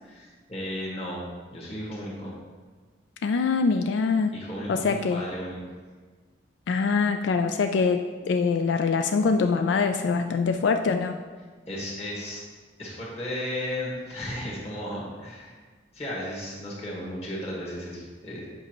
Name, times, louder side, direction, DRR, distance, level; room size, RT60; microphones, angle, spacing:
voice 1, 0.0-2.4 4.3-5.6 11.7-12.4 12.8-15.6 15.9-18.5, left 1 dB, 35° left, -4 dB, 1.6 m, -35 dB
voice 2, 3.2-4.3 4.7-5.2 6.7-11.2, left 4 dB, 90° left, 6 dB, 0.3 m, -24 dB
8.2 x 5.2 x 3.0 m, 1.4 s
head